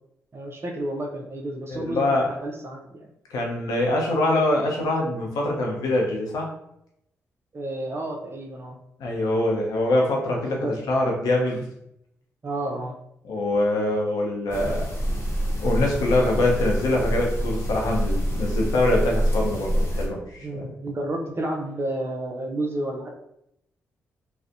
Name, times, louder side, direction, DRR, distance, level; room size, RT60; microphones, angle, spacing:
voice 1, 0.3-3.1 7.5-8.8 10.5-10.8 11.6-11.7 12.4-12.9 20.4-23.1, right 1 dB, 40° right, 2 dB, 0.5 m, -31 dB
voice 2, 1.7-2.3 3.3-6.5 9.0-11.6 13.3-14.9 15.6-20.6, left 1 dB, 75° left, -1 dB, 0.6 m, -24 dB
sound 1, 14.5-20.1, equal, 40° left, 0.9 m, -26 dB
2.6 x 2.0 x 2.5 m, 0.78 s
supercardioid pair, 45°, 6 cm